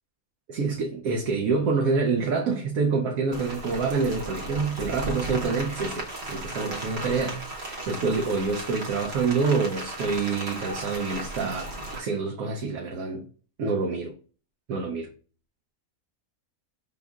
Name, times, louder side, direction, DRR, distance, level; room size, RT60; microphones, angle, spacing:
voice 1, 0.5-13.2 13.6-14.1 14.7-15.1, right 4 dB, 80° right, 1.1 m, -27 dB
Rain, 3.3-12.0, right 1 dB, 50° right, 1.1 m, -36 dB
5.0 x 3.6 x 2.3 m
omnidirectional pair, 1.5 m